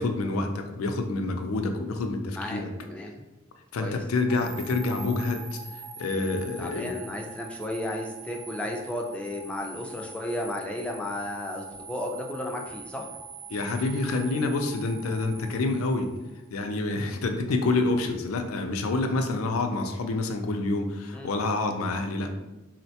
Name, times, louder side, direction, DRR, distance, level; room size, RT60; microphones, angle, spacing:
voice 1, 0.0-2.7 3.7-6.9 13.5-16.2 16.5-22.3, left 2 dB, 85° left, 6 dB, 0.4 m, -28 dB
voice 2, 2.4-3.1 3.8-4.0 6.6-13.1 21.1-21.3, left 1 dB, 5° left, 0 dB, 0.3 m, -34 dB
sound 1, 4.3-16.5, right 3 dB, 80° right, 0.6 m, -44 dB
3.9 x 2.1 x 2.7 m, 1.0 s
head